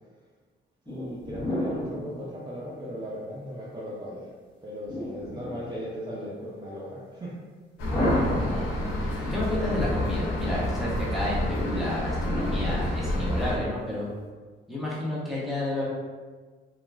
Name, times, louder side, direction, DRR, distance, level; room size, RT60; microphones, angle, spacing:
sound 1, 0.9-3.2 4.9-6.1 7.9-9.2 12.2-13.7, left 1 dB, 25° left, 0.8 m, -32 dB
voice 1, 0.9-4.3 4.6-7.3, equal, 20° right, -7 dB, 0.5 m, -37 dB
sound 2, 7.8-13.6, left 1 dB, 90° left, 0.6 m, -29 dB
voice 2, 8.0-8.7 9.0-14.1 14.7-15.9, left 1 dB, ahead, -7 dB, 0.9 m, -31 dB
2.9 x 2.3 x 2.4 m, 1.4 s
cardioid pair, 90°, 20 cm